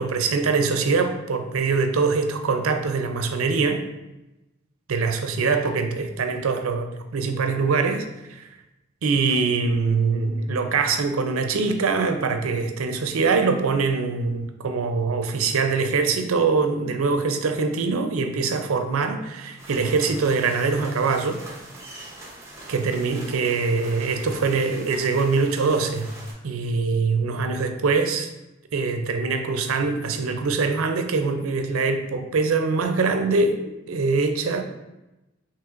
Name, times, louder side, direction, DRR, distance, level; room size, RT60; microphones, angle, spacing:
voice 1, 0.0-3.8 4.9-8.5 9.0-21.4 22.0-22.1 22.7-26.1 26.4-28.3 28.7-34.6, right 4 dB, 90° right, 7 dB, 0.5 m, -23 dB
sound 1, 19.6-26.3, right 2 dB, 15° right, 0.7 m, -43 dB
5.7 x 2.9 x 2.4 m, 0.97 s
head